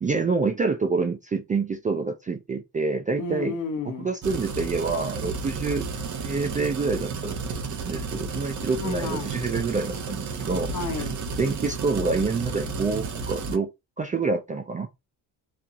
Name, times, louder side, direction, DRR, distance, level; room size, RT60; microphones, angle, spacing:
voice 1, 0.0-3.6 3.9-5.9 6.2-7.4 7.8-10.7 11.4-13.7 14.0-14.9, right 4 dB, 20° right, 0.3 m, -27 dB
voice 2, 3.2-4.1 8.7-9.3 10.7-11.2, left 4 dB, 50° left, 0.8 m, -32 dB
sound 1, 4.2-13.6, right 4 dB, 45° right, 0.7 m, -32 dB
2.7 x 2.3 x 2.5 m
cardioid pair, 80°, 40 cm